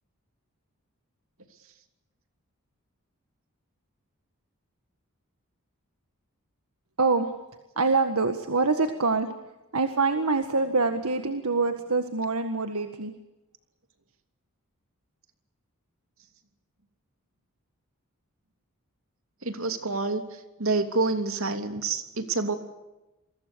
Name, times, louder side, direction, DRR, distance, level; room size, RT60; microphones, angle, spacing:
voice 1, 7.0-7.3 7.8-9.3 9.7-13.1, right 3 dB, 80° right, 7 dB, 1.7 m, -25 dB
voice 2, 19.4-22.6, right 3 dB, 65° right, 7 dB, 3.1 m, -28 dB
29.0 x 23.0 x 6.9 m, 1.0 s
head